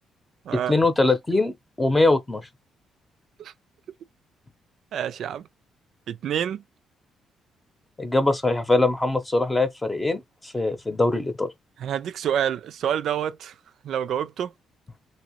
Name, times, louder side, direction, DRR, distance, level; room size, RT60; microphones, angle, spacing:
voice 1, 0.5-2.5 8.0-11.5, left 2 dB, 15° left, 0.7 m, -22 dB
voice 2, 4.9-5.5 6.1-6.6 11.8-13.5 13.8-14.5, right 9 dB, 70° right, 0.4 m, -27 dB
2.8 x 2.8 x 3.0 m
cardioid pair, 90°, 0 cm